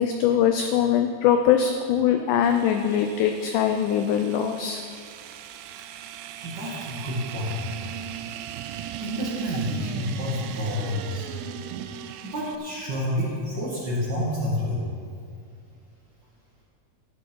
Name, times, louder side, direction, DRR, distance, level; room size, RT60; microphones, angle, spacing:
voice 1, 0.0-4.8 6.4-6.8, left 9 dB, 80° left, 6 dB, 1.8 m, -22 dB
sound 1, 2.4-12.6, right 11 dB, 80° right, 2.3 m, -38 dB
voice 2, 6.4-7.6 9.0-11.3 12.2-14.9, left 1 dB, 35° right, -6 dB, 2.1 m, -29 dB
12.5 x 11.0 x 4.6 m, 2.3 s
omnidirectional pair, 4.2 m